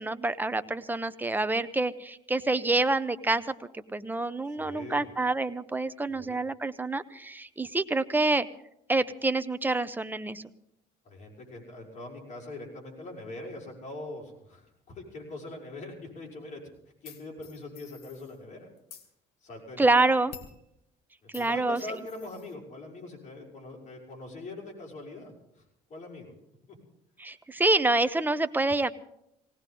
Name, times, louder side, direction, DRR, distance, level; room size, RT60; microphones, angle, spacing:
voice 1, 0.0-3.4 3.7-8.5 8.9-10.4 19.8-20.3 21.3-21.8 27.2-28.9, right 2 dB, 10° right, 12 dB, 0.8 m, -27 dB
voice 2, 4.5-5.1 6.1-6.4 11.0-16.6 17.0-18.7 19.4-19.9 21.2-25.6 25.9-26.3 26.7-26.8, left 2 dB, 45° left, -1 dB, 5.7 m, -42 dB
sound 1, 17.0-18.4 18.8-19.1 20.3-20.6 21.3-22.5, left 8 dB, 75° left, 2.4 m, -49 dB
19.0 x 18.0 x 3.9 m, 0.78 s
cardioid pair, 110°, 17 cm